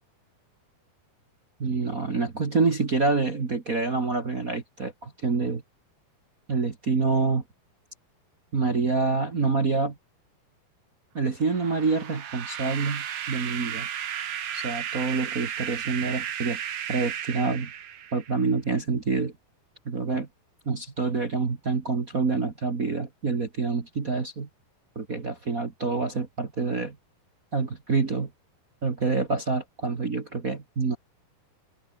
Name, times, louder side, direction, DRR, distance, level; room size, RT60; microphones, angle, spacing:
voice 1, 1.6-5.6 6.5-7.4 8.5-10.0 11.1-13.9 14.5-16.6 16.9-17.7 18.1-19.3 19.8-20.3 20.6-24.5 24.9-26.9 27.5-28.3 28.8-31.0, right 4 dB, 40° right, 1.1 m, -27 dB
sound 1, 11.4-18.4, right 9 dB, 60° right, 1.6 m, -34 dB
omnidirectional pair, 4.7 m